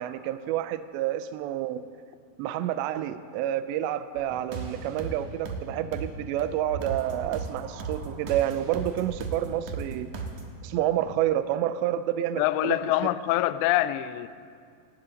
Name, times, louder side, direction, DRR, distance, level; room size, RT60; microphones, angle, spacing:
voice 1, 0.0-1.9 2.4-10.1 10.6-12.9, right 12 dB, 85° right, 11 dB, 2.5 m, -29 dB
sound 1, 4.2-10.4, right 4 dB, 65° right, 2.0 m, -37 dB
voice 2, 12.4-14.3, left 15 dB, 90° left, 14 dB, 2.5 m, -25 dB
27.0 x 13.0 x 3.9 m, 2.2 s
omnidirectional pair, 5.6 m